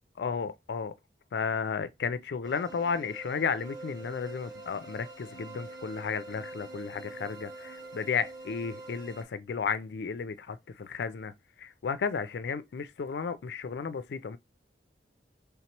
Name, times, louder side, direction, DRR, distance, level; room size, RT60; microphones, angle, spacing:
voice 1, 0.2-0.9 1.3-11.3 11.6-14.4, left 6 dB, 65° left, 0.4 m, -33 dB
sound 1, 2.4-9.2, right 2 dB, 20° right, 1.4 m, -45 dB
3.4 x 2.9 x 4.4 m
head